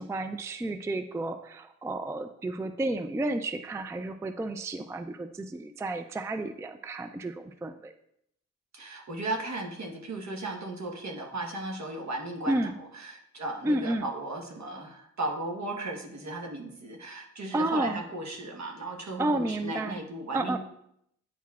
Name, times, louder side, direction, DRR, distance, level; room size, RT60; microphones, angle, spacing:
voice 1, 0.0-7.9 12.5-12.8 13.6-14.1 17.5-18.0 19.2-20.0 20.3-20.6, right 2 dB, 10° right, 9 dB, 0.3 m, -31 dB
voice 2, 8.7-12.7 12.9-20.6, right 2 dB, 60° right, 2 dB, 1.2 m, -36 dB
9.1 x 4.6 x 2.3 m, 0.74 s
cardioid pair, 70°, 31 cm